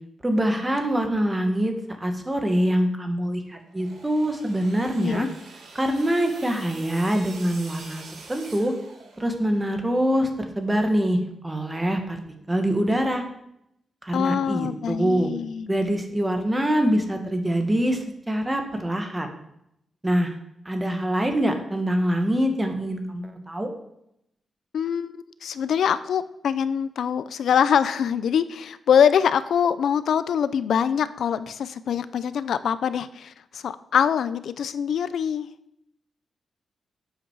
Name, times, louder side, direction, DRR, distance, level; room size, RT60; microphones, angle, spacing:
voice 1, 0.2-5.3 5.8-8.0 8.3-8.7 9.2-12.2 12.5-13.2 14.0-15.3 15.7-19.3 20.0-20.3 20.7-23.7, equal, 15° right, 5 dB, 1.8 m, -24 dB
sound 1, 3.7-9.5, right 3 dB, 80° right, 3.0 m, -45 dB
voice 2, 14.1-15.7 24.7-35.5, left 8 dB, 80° left, 15 dB, 0.6 m, -24 dB
12.0 x 8.1 x 4.8 m, 0.77 s
cardioid pair, 110°, 0 cm